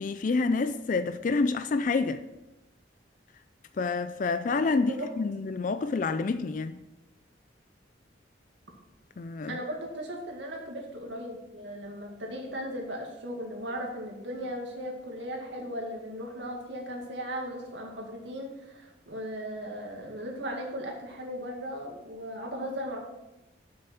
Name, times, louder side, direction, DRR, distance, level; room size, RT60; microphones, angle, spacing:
voice 1, 0.0-2.2 3.8-6.8 9.2-9.6, left 4 dB, 45° left, 0.4 m, -28 dB
voice 2, 4.7-5.1 9.5-23.0, equal, 80° right, 2.1 m, -37 dB
7.8 x 6.6 x 5.9 m
head